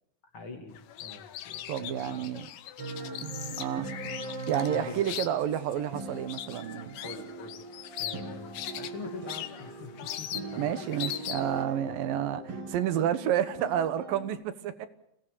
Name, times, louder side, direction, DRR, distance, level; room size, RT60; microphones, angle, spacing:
voice 1, 0.3-2.3 4.7-5.1 7.0-7.5 8.0-10.8, left 4 dB, 40° left, 4 dB, 3.2 m, -44 dB
sound 1, 0.8-11.6, left 12 dB, 80° left, 2.7 m, -40 dB
voice 2, 1.7-2.5 3.2-3.9 4.5-7.0 10.6-14.9, right 10 dB, 85° right, 12 dB, 2.9 m, -30 dB
sound 2, 2.8-14.3, right 3 dB, 45° right, 3.5 m, -41 dB
24.0 x 17.0 x 6.8 m, 0.75 s
omnidirectional pair, 3.9 m